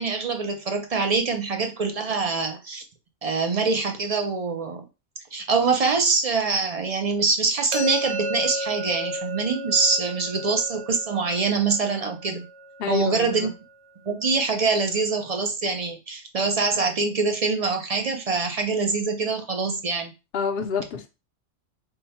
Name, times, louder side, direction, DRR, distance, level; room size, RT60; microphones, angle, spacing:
voice 1, 0.0-2.8 3.2-4.8 5.3-12.5 12.9-13.5 14.1-20.1, right 4 dB, 50° right, 0.4 m, -24 dB
sound 1, 7.7-13.5, equal, 70° right, 0.9 m, -33 dB
voice 2, 12.8-13.5 20.3-21.1, left 6 dB, 60° left, 0.8 m, -27 dB
3.7 x 2.1 x 4.1 m
omnidirectional pair, 1.2 m